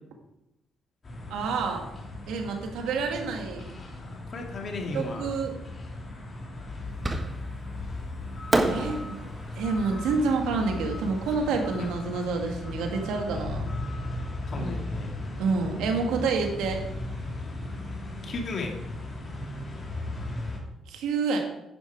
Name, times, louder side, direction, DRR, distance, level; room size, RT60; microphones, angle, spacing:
sound 1, 1.0-20.6, left 2 dB, 35° left, 3.8 m, -37 dB
voice 1, 1.3-1.9 2.3-3.6 4.9-5.6 8.6-9.3 9.6-13.6 14.6-14.7 15.4-16.8 20.9-21.4, right 4 dB, 90° right, 3 dB, 2.1 m, -28 dB
voice 2, 3.5-5.3 11.8-11.9 14.5-15.1 18.2-18.8, left 2 dB, 50° left, 2 dB, 2.3 m, -35 dB
Fireworks, 7.0-7.7 8.5-11.6, right 2 dB, 25° right, 1.5 m, -31 dB
10.5 x 10.0 x 4.8 m, 0.89 s
cardioid pair, 90°, 0 cm